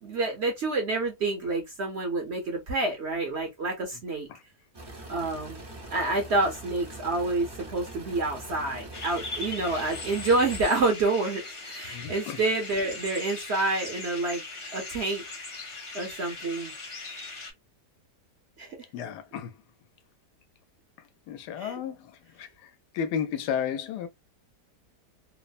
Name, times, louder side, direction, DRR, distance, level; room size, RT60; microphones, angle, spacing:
voice 1, 0.0-4.3 5.1-5.6 5.9-14.4 14.7-15.2 15.9-16.7 18.6-18.7 21.6-21.8, right 2 dB, 55° right, 0.8 m, -28 dB
sound 1, 4.7-10.6, right 1 dB, 30° right, 0.4 m, -43 dB
sound 2, 8.9-17.5, left 3 dB, 40° left, 0.4 m, -40 dB
voice 2, 11.9-12.4 18.9-19.5 21.3-22.1 22.4-22.5 22.9-24.1, left 8 dB, 85° left, 1.2 m, -32 dB
3.1 x 2.0 x 2.3 m
omnidirectional pair, 1.7 m